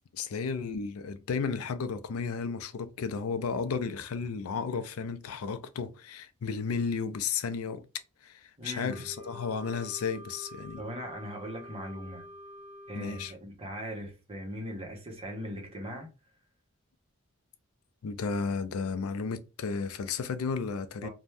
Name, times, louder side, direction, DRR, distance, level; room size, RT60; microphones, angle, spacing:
voice 1, 0.1-7.8 8.2-10.8 12.9-13.3 18.0-21.1, left 5 dB, 85° left, 0.4 m, -33 dB
voice 2, 8.6-9.1 10.8-12.3 12.9-16.1 21.0-21.1, equal, 30° right, 0.9 m, -39 dB
Wind instrument woodwind instrument, 8.9-13.3, equal, 25° left, 1.1 m, -47 dB
2.6 x 2.2 x 3.2 m
head